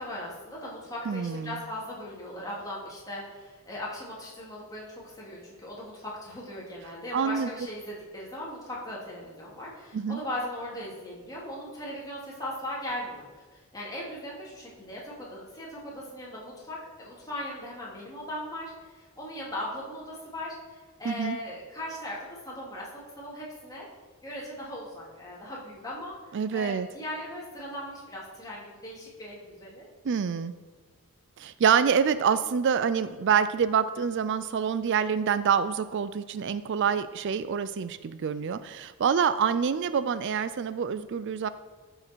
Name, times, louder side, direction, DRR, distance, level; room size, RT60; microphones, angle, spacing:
voice 1, 0.0-23.9 24.2-26.2 26.5-29.9 36.8-36.9, left 1 dB, 15° left, -5 dB, 2.8 m, -38 dB
voice 2, 1.1-1.6 7.1-7.5 9.9-10.2 21.0-21.4 26.3-26.9 30.0-30.5 31.4-41.5, right 7 dB, 55° right, 13 dB, 0.4 m, -26 dB
14.0 x 6.5 x 4.6 m, 1.4 s
head